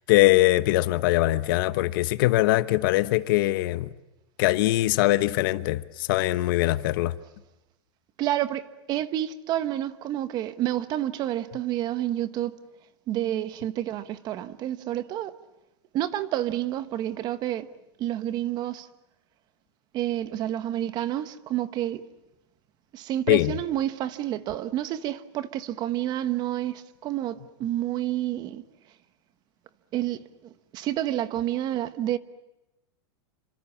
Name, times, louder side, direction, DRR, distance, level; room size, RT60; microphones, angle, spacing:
voice 1, 0.1-3.9 4.4-7.1 23.3-23.5, left 17 dB, 55° left, 1.1 m, -22 dB
voice 2, 8.2-8.6 8.9-12.6 13.1-15.4 15.9-17.7 18.0-18.9 19.9-22.1 22.9-28.6 29.9-32.2, right 13 dB, 30° right, 1.2 m, -29 dB
28.5 x 26.0 x 7.3 m
supercardioid pair, 165°, 14 cm